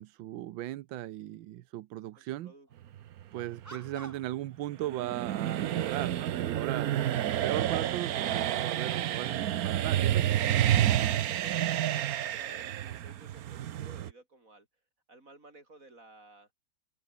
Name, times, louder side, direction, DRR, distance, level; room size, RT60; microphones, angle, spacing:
voice 1, 0.0-2.5 3.3-10.4, right 14 dB, 90° right, 1.5 m, -37 dB
voice 2, 2.1-2.9 3.3-3.6 10.5-14.7 15.1-16.5, right 2 dB, 45° right, 6.0 m, -55 dB
sound 1, 2.7-2.9 3.6-4.4 5.0-5.6 6.5-6.6 7.2-8.8, right 2 dB, 10° right, 1.2 m, -53 dB
Monster heavy breathing and moaning, 2.9-14.1, right 11 dB, 60° right, 1.1 m, -29 dB
open air
omnidirectional pair, 2.1 m